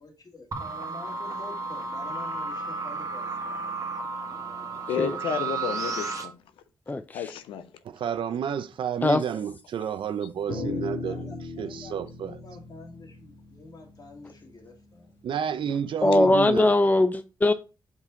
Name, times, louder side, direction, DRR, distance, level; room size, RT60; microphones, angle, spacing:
voice 1, 0.0-3.7 10.3-10.6 11.0-15.1 15.7-15.9, left 3 dB, 45° left, 2.3 m, -47 dB
sound 1, 0.5-6.2, right 4 dB, 40° right, 1.6 m, -33 dB
voice 2, 4.9-6.4 7.1-7.7, left 8 dB, 85° left, 0.5 m, -31 dB
voice 3, 6.9-7.3 9.0-9.2 16.0-17.5, left 2 dB, 20° left, 0.5 m, -21 dB
voice 4, 7.8-11.3 11.6-12.3 15.2-16.7, right 8 dB, 70° right, 0.6 m, -30 dB
sound 2, 10.5-15.0, left 3 dB, 60° left, 2.8 m, -37 dB
5.4 x 4.8 x 3.9 m
supercardioid pair, 45°, 9 cm